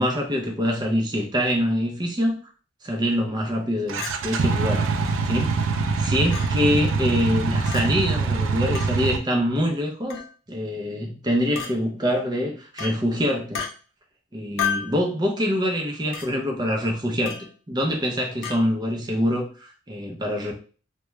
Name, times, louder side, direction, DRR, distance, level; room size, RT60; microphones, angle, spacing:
voice 1, 0.0-2.4 2.8-4.9 5.2-5.5 6.0-10.2 10.5-13.6 14.3-17.3 17.7-20.5, equal, 20° right, 1 dB, 0.5 m, -25 dB
sound 1, 3.9-9.2, right 4 dB, 75° right, 0.3 m, -24 dB
Chink clink, 4.0-4.2 5.1-5.2 6.3-6.5 7.7-7.8 8.8-8.9 10.1-10.3 11.6-11.7 12.8-13.0 13.5-13.7 14.6-14.9 16.1-16.3 17.3-17.5 18.4-18.6, left 7 dB, 85° left, 0.6 m, -30 dB
2.3 x 2.2 x 3.0 m, 0.37 s
head